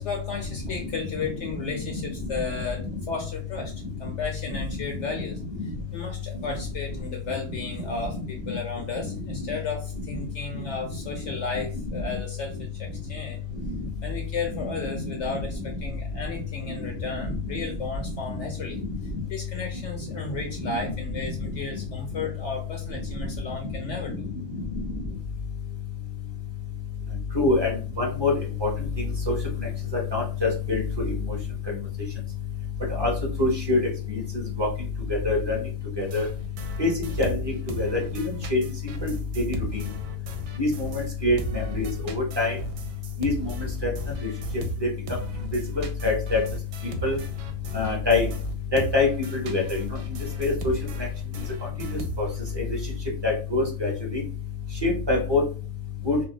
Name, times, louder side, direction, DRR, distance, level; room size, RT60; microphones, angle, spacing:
voice 1, 0.0-2.8 3.1-3.7 4.0-5.4 5.9-13.4 14.0-18.8 19.3-24.3, left 4 dB, 65° left, 2 dB, 0.8 m, -34 dB
voice 2, 0.7-2.0 2.3-2.6 4.5-4.6 5.0-5.7 6.3-6.4 7.5-7.6 7.9-8.6 9.0-9.5 10.5-10.6 11.3-11.4 11.9-12.2 13.6-13.9 14.6-15.8 16.7-16.9 17.2-17.6 18.3-18.4 18.8-19.2 20.5-20.9 21.2-21.5 23.6-23.7 24.1-24.2 24.5-25.1 27.3-28.3 28.6-28.7 29.0-31.4 31.7-31.8 32.9-33.1 33.4-33.8 34.1-34.7 35.1-35.6 36.0-36.2 36.8-39.8 40.6-42.6 43.2-43.9 44.2-44.3 44.8-44.9 45.5-46.4 47.0-47.2 47.7-48.3 48.7-50.0 50.4-50.7 51.8-52.3 52.5-52.8 53.2-54.2 54.8-55.4 56.0-56.2, left 3 dB, 20° right, -1 dB, 0.7 m, -26 dB
sound 1, 36.0-41.1 41.4-52.5, right 3 dB, 70° right, 1.0 m, -37 dB
2.6 x 2.2 x 3.7 m, 0.35 s
omnidirectional pair, 1.5 m